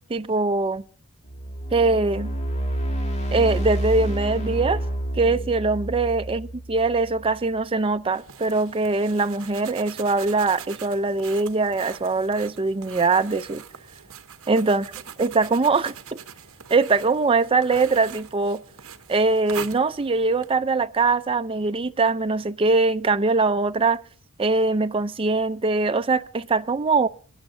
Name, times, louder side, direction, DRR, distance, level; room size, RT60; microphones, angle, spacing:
voice 1, 0.1-0.8 1.7-2.3 3.3-4.8 5.2-13.6 14.5-14.8 15.2-15.9 16.7-18.6 19.1-24.0 24.4-27.1, right 3 dB, 25° right, 0.5 m, -22 dB
sound 1, 1.2-7.4, right 1 dB, 30° left, 2.3 m, -29 dB
sound 2, 8.1-20.5, right 7 dB, 70° right, 1.0 m, -42 dB
24.5 x 10.5 x 2.7 m
head